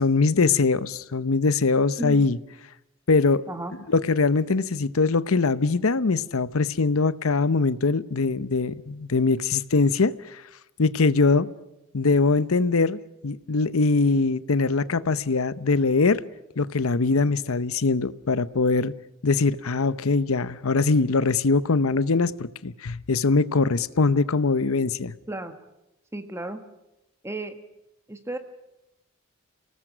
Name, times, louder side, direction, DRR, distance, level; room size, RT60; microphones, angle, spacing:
voice 1, 0.0-2.4 3.1-3.4 3.9-10.4 10.8-11.5 11.9-16.2 16.6-18.9 19.2-25.1, left 3 dB, 85° left, 16 dB, 0.8 m, -22 dB
voice 2, 26.1-26.6 27.2-27.6 28.1-28.4, right 1 dB, 10° right, 8 dB, 1.4 m, -33 dB
29.0 x 18.5 x 6.3 m, 0.91 s
head